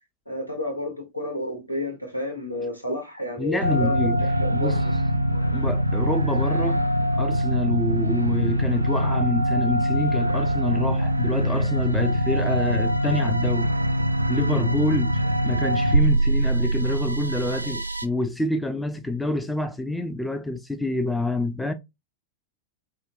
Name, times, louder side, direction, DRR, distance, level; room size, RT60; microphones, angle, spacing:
voice 1, 0.3-4.8, left 1 dB, 85° left, 1.3 m, -31 dB
voice 2, 3.4-4.2 4.5-4.8 5.5-6.8 7.1-13.7 14.3-15.1 15.4-21.7, left 2 dB, 5° left, 0.5 m, -27 dB
sound 1, 3.6-18.0, right 1 dB, 85° right, 0.4 m, -23 dB
6.2 x 2.2 x 2.5 m
figure-of-eight pair, 90°, 0 cm